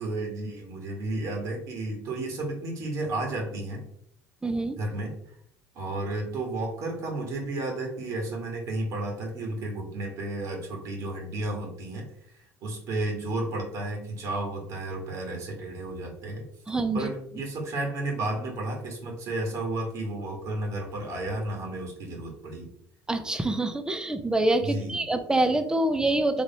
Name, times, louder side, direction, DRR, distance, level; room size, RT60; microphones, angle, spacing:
voice 1, 0.0-3.8 4.7-5.1 5.7-12.1 12.3-16.4 16.9-22.7 24.6-25.0, right 2 dB, 55° right, 1 dB, 1.6 m, -32 dB
voice 2, 4.4-4.8 16.7-17.1 23.1-26.4, right 2 dB, 10° right, 8 dB, 0.6 m, -26 dB
4.1 x 3.1 x 4.1 m, 0.68 s
supercardioid pair, 105°, 6 cm